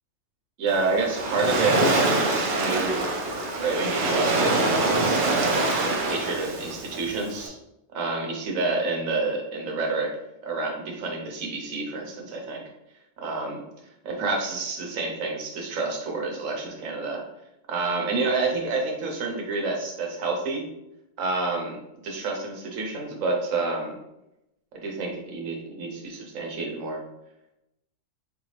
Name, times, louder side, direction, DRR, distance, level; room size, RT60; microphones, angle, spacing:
voice 1, 0.6-3.2 3.6-5.7 6.0-7.6 7.9-10.2 10.4-12.6 13.2-13.6 14.0-17.2 17.7-20.7 21.2-23.9 24.7-27.0, right 3 dB, 75° right, 1 dB, 1.2 m, -29 dB
Waves surf, 0.7-7.5, right 2 dB, 55° right, 0.6 m, -25 dB
4.2 x 2.6 x 3.1 m, 0.87 s
omnidirectional pair, 1.4 m